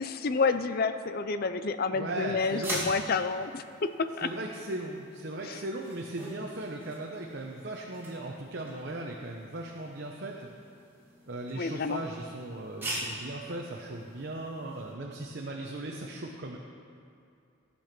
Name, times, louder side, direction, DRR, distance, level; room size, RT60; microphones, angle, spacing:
voice 1, 0.0-4.3 5.4-5.6 11.5-12.0, left 4 dB, 45° left, 11 dB, 0.5 m, -29 dB
voice 2, 1.9-2.8 4.2-10.5 11.3-16.6, right 2 dB, 55° right, 0 dB, 0.8 m, -38 dB
sound 1, 2.4-14.9, right 1 dB, 10° right, 2.6 m, -43 dB
15.0 x 7.1 x 6.0 m, 2.5 s
head